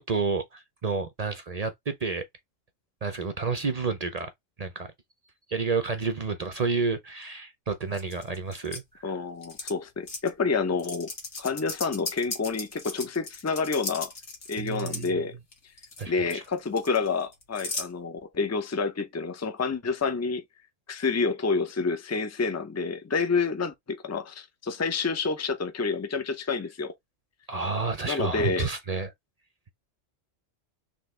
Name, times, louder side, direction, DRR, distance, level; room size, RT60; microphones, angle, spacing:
voice 1, 0.0-2.2 3.0-4.3 4.6-4.9 5.5-9.1 14.6-15.2 16.0-16.4 27.5-29.1, right 4 dB, 40° right, 0.6 m, -30 dB
sound 1, 7.9-8.8 9.4-9.7 10.1-10.3 10.8-15.1 15.5-16.0 16.3-17.9, left 3 dB, 65° left, 1.8 m, -36 dB
voice 2, 9.0-11.1 11.4-14.1 14.5-15.4 16.1-20.4 20.9-26.9 28.1-28.7, left 4 dB, 20° left, 0.5 m, -28 dB
4.1 x 3.4 x 3.2 m
omnidirectional pair, 1.3 m